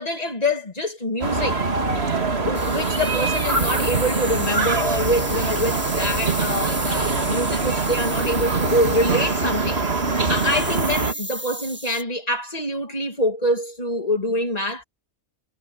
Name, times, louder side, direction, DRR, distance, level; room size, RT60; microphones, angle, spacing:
voice 1, 0.0-1.6 2.4-9.8 10.3-14.8, left 1 dB, 40° left, 2.5 m, -25 dB
sound 1, 1.2-11.1, right 3 dB, 90° right, 2.5 m, -23 dB
sound 2, 2.5-12.0, right 1 dB, 10° right, 1.7 m, -33 dB
omnidirectional pair, 1.0 m